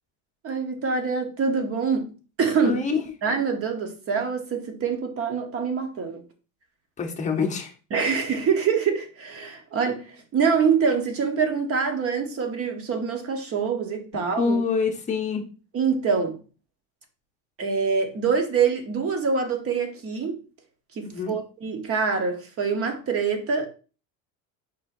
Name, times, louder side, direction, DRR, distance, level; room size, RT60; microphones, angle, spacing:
voice 1, 0.4-2.1 2.4-2.8 3.2-6.2 7.9-14.6 15.7-16.4 17.6-20.4 20.9-23.7, right 5 dB, 40° right, 1.0 m, -25 dB
voice 2, 2.6-3.0 7.0-7.7 14.4-15.4 21.0-21.4, left 5 dB, 20° left, 0.8 m, -25 dB
4.5 x 4.3 x 2.5 m
cardioid pair, 140°, 37 cm